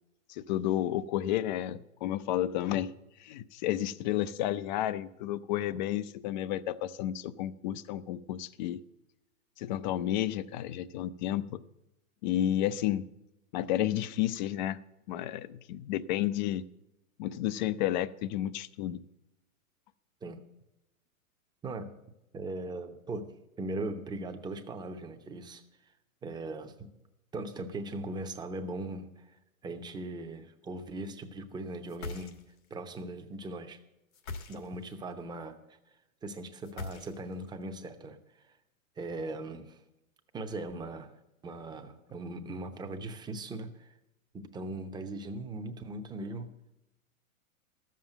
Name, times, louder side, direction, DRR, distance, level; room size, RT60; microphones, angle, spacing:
voice 1, 0.3-2.9 3.2-8.8 9.6-11.6 12.2-13.0 13.5-14.8 15.1-16.6 17.2-19.0, left 12 dB, 35° left, 17 dB, 0.5 m, -31 dB
voice 2, 21.6-21.9 22.3-23.3 23.6-25.6 26.2-26.9 27.3-29.2 29.6-32.4 32.7-33.8 34.5-35.6 36.2-38.2 39.0-39.8 40.3-41.2 41.4-43.9 44.3-46.5, right 2 dB, 10° right, 6 dB, 0.7 m, -39 dB
sound 1, 31.9-32.7 34.1-35.0 36.6-37.5, left 4 dB, 80° left, 1.5 m, -42 dB
12.5 x 7.5 x 7.7 m, 0.90 s
hypercardioid pair, 130°, 41 cm